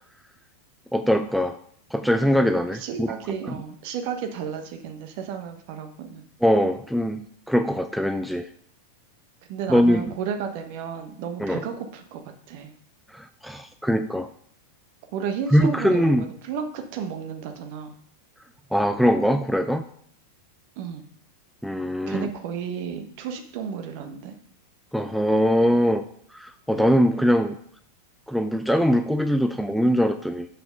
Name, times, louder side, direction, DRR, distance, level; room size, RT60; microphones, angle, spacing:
voice 1, 0.9-1.6 1.9-3.1 6.4-8.5 9.7-10.0 11.4-11.6 13.1-14.3 15.5-16.3 18.7-19.8 21.6-22.3 24.9-26.0 26.3-27.6 28.3-30.5, equal, ahead, 8 dB, 0.4 m, -22 dB
voice 2, 2.7-6.2 9.5-12.7 15.1-17.9 20.8-21.1 22.1-24.4 26.7-26.9, right 7 dB, 45° right, 6 dB, 1.1 m, -33 dB
6.9 x 5.9 x 5.3 m, 0.62 s
figure-of-eight pair, 90°, 0 cm